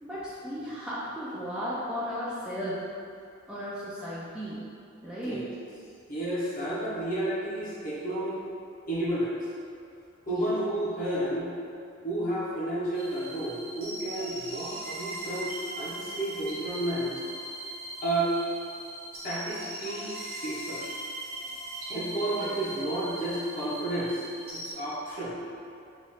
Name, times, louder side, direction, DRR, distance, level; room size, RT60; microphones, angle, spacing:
voice 1, 0.0-2.8 3.5-4.6 5.0-5.5 10.3-10.5 22.3-22.6, equal, 5° right, -10 dB, 0.4 m, -35 dB
voice 2, 6.1-8.4 8.9-9.4 10.3-11.5 12.0-17.1 18.0-18.3 19.1-20.8 21.9-24.2 24.5-25.4, right 1 dB, 40° left, -8 dB, 0.8 m, -31 dB
sound 1, 12.9-24.7, right 1 dB, 45° right, 0.9 m, -39 dB
3.0 x 2.4 x 4.2 m, 2.5 s
head